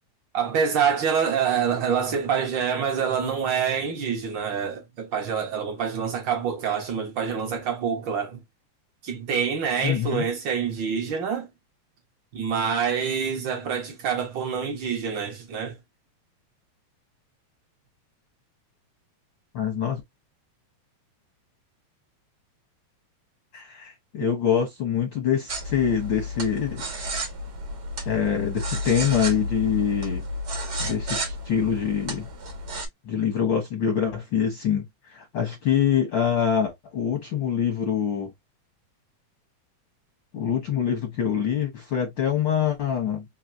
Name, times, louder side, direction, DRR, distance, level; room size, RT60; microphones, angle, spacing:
voice 1, 0.3-8.4 9.0-11.5 12.3-15.8, right 7 dB, 65° right, 1.1 m, -26 dB
voice 2, 9.8-10.2 19.5-20.0 23.5-26.9 28.0-30.2 30.8-32.3 33.1-38.3 40.3-43.2, left 8 dB, 65° left, 1.1 m, -25 dB
sound 1, 25.5-32.9, equal, 45° right, 1.3 m, -32 dB
4.7 x 2.9 x 2.6 m
omnidirectional pair, 3.5 m